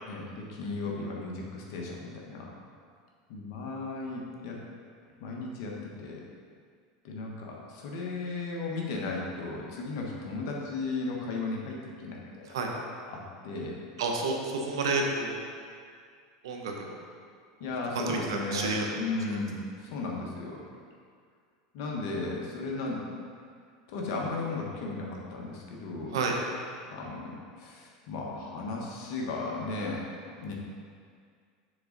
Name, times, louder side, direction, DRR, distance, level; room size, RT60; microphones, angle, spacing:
voice 1, 0.1-2.5 3.3-4.6 5.2-6.2 7.0-12.8 13.1-13.8 17.6-20.6 21.7-23.0 23.9-26.2 26.9-30.5, left 3 dB, 65° left, -1 dB, 1.2 m, -35 dB
voice 2, 14.0-15.4 16.4-17.0 17.9-18.9 19.2-19.4 26.1-26.3, right 3 dB, 85° right, 1 dB, 0.8 m, -30 dB
6.6 x 3.8 x 3.9 m, 2.1 s
supercardioid pair, 115°, 2 cm